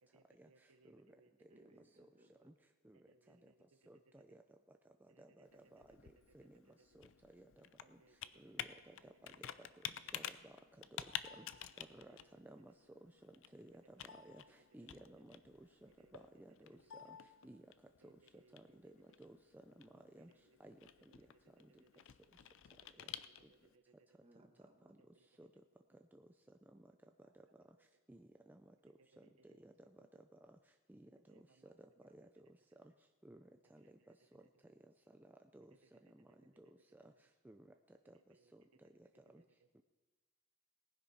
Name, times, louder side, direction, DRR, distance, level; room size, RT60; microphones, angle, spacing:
voice 1, 0.0-1.8 2.9-4.3 5.1-6.9 7.7-9.4 9.8-10.1 10.4-10.5 11.4-12.2 13.8-14.5 14.8-15.4 15.9-16.3 16.8-17.1 18.0-19.2 20.0-20.6 21.2-22.0 22.8-24.2 25.0-26.0 27.0-28.0 28.9-30.3 31.2-32.5 33.6-34.7 35.7-37.1 38.1-39.7, right 3 dB, 75° right, 8 dB, 0.8 m, -72 dB
voice 2, 1.5-2.5 24.2-24.9 32.1-32.2, right 1 dB, 30° right, 4 dB, 1.3 m, -66 dB
voice 3, 3.9-4.4 5.2-6.6 6.9-8.0 8.4-9.5 10.1-10.6 10.9-11.0 11.3-11.5 11.8-12.7 13.0-13.7 14.2-17.2 17.4-17.6 18.0-19.4 19.7-19.9 20.1-20.3 20.6-20.8 21.6-21.7 25.4-25.5 26.1-26.2 26.7-26.9 28.1-28.9 29.4-29.7 30.5-30.6 30.9-31.1 32.1-32.3 32.8-32.9 33.2-33.8 35.5-36.3 36.6-37.1 37.4-37.7 38.1-38.2 38.5-38.6 39.3-39.4, right 1 dB, 10° right, 6 dB, 0.3 m, -59 dB
Computer keyboard, 5.5-23.7, left 10 dB, 60° left, 0.5 m, -51 dB
18.5 x 10.5 x 4.2 m, 1.2 s
head